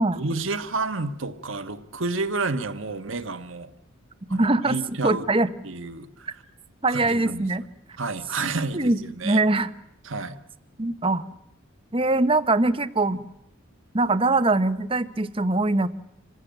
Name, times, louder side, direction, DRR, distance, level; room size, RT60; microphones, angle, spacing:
voice 1, 0.1-3.7 4.3-5.2 5.6-6.3 6.9-7.5 8.0-9.4 10.0-10.4, right 3 dB, 70° right, 9 dB, 1.4 m, -30 dB
voice 2, 4.3-4.8 5.0-5.5 6.8-7.6 8.7-9.7 10.8-11.2 11.9-13.3 13.9-15.9, right 2 dB, 25° right, 12 dB, 0.9 m, -22 dB
26.5 x 16.0 x 9.0 m, 0.78 s
head